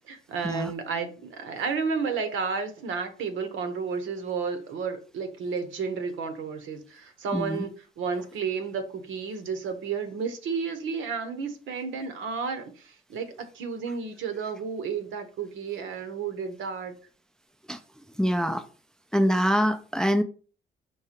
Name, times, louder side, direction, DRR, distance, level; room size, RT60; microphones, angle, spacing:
voice 1, 0.1-13.3 13.5-16.9, right 5 dB, 80° right, 0.9 m, -32 dB
voice 2, 7.3-7.6 17.7-17.8 18.2-18.6 19.1-20.2, equal, 5° left, 0.3 m, -24 dB
4.7 x 3.2 x 2.9 m
cardioid pair, 90°, 20 cm